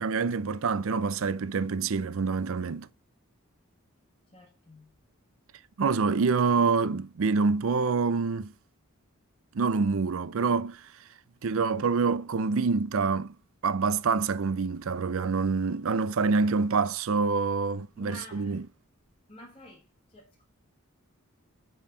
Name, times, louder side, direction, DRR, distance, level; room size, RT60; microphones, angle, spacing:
voice 1, 0.0-2.9 5.8-8.5 9.5-10.9 11.4-13.3 13.6-18.7, right 4 dB, 70° right, 0.5 m, -26 dB
voice 2, 4.3-4.9 18.0-18.6 19.3-19.8 20.1-20.5, equal, 30° left, 1.4 m, -49 dB
5.4 x 4.6 x 5.0 m
head